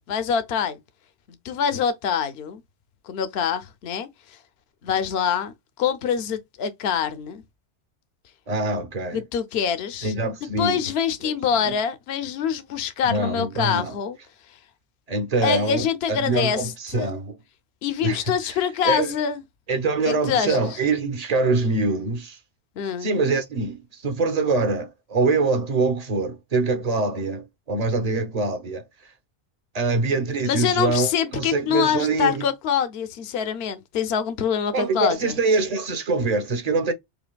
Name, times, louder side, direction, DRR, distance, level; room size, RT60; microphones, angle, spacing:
voice 1, 0.1-0.8 1.4-2.6 3.1-4.1 4.8-7.4 9.1-10.1 10.6-14.2 15.4-16.6 16.9-17.2 17.8-19.4 20.0-20.7 22.8-23.1 30.4-35.3, left 7 dB, 70° left, 0.9 m, -25 dB
voice 2, 8.5-9.2 10.0-10.9 11.2-11.7 13.0-13.9 15.1-17.4 18.0-19.2 19.7-22.4 23.0-29.1 29.7-32.5 34.7-36.9, right 3 dB, 35° right, 0.9 m, -24 dB
5.1 x 2.7 x 2.2 m
omnidirectional pair, 1.2 m